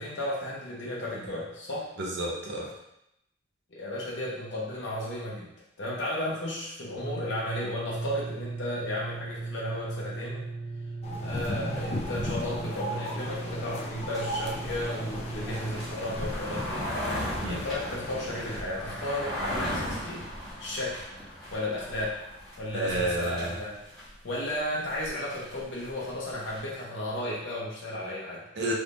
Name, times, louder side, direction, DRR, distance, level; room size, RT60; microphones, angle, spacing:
voice 1, 0.0-1.9 3.7-5.5 5.8-10.5 11.2-20.3 20.6-21.1 21.5-22.2 22.6-23.7 24.2-28.4, left 1 dB, 65° left, -5 dB, 0.8 m, -34 dB
voice 2, 2.0-2.7 17.4-17.6 22.7-23.5 28.6-28.7, right 1 dB, 55° right, -2 dB, 0.8 m, -30 dB
sound 1, 7.0-15.9, right 3 dB, 90° right, 0.9 m, -38 dB
sound 2, 11.0-18.6, left 1 dB, 30° left, 0.4 m, -37 dB
sound 3, 11.7-26.6, equal, ahead, 1.4 m, -38 dB
3.5 x 3.1 x 2.6 m, 0.81 s
head